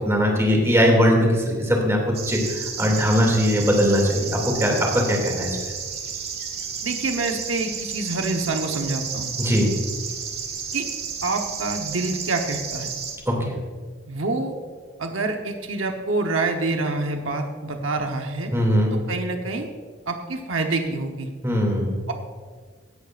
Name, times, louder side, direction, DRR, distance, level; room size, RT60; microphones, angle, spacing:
voice 1, 0.0-2.0 2.3-4.3 4.6-5.6 9.4-9.7 13.3-13.4 18.5-18.9 21.4-22.0, equal, 15° right, -1 dB, 2.4 m, -20 dB
sound 1, 2.1-13.2, right 6 dB, 55° right, 1.5 m, -32 dB
voice 2, 6.8-9.4 10.7-10.9 11.2-12.9 14.1-14.5 15.0-18.5 18.9-19.7 20.1-21.3 22.1-22.2, right 3 dB, 85° right, 4 dB, 1.0 m, -26 dB
16.5 x 11.0 x 2.5 m, 1.5 s
head